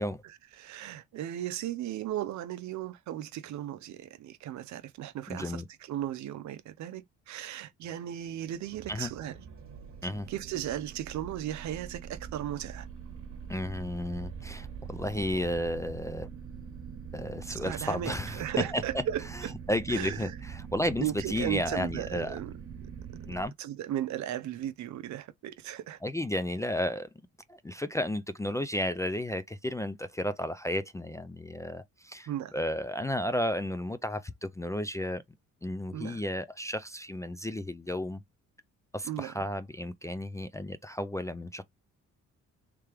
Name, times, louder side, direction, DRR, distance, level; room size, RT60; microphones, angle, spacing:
voice 1, 0.2-9.4 10.3-12.9 17.5-19.5 19.9-20.4 21.0-22.5 23.6-26.0 32.3-32.5 35.9-36.2 39.0-39.4, right 12 dB, 70° right, 0.6 m, -36 dB
voice 2, 5.3-5.7 8.9-9.1 10.0-10.3 13.5-16.3 17.1-18.4 18.7-18.8 19.7-22.4 23.3-23.5 26.0-27.1 27.5-35.2 35.6-38.2 38.9-41.6, left 1 dB, 10° left, 0.3 m, -33 dB
sound 1, 8.6-23.5, right 7 dB, 45° right, 1.2 m, -43 dB
3.3 x 3.3 x 3.3 m
cardioid pair, 90°, 30 cm